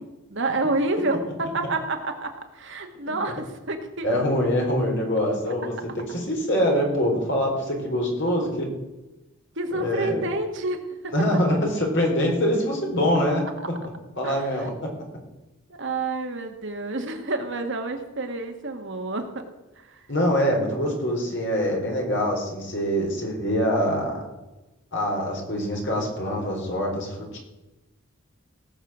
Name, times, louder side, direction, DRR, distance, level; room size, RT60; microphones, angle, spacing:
voice 1, 0.0-4.2 9.6-11.1 14.2-14.5 15.8-19.3 19.8-20.0, right 2 dB, 55° right, 5 dB, 1.8 m, -29 dB
voice 2, 4.0-8.7 9.7-10.3 11.1-13.4 14.2-14.9 20.1-24.2 24.9-27.4, equal, 55° left, 0 dB, 4.2 m, -24 dB
18.0 x 6.6 x 7.5 m, 1.0 s
head